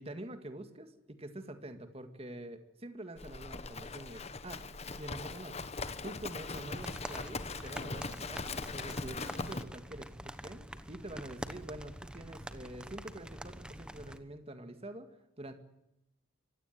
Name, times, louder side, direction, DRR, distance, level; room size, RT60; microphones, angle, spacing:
voice 1, 0.0-15.1 15.4-15.5, right 1 dB, 30° right, 8 dB, 2.0 m, -46 dB
Livestock farm animals working animals, 3.2-9.6, left 3 dB, 30° left, 1.2 m, -40 dB
sound 1, 6.5-14.2, right 1 dB, 5° right, 1.1 m, -46 dB
25.0 x 17.0 x 9.5 m, 0.90 s
head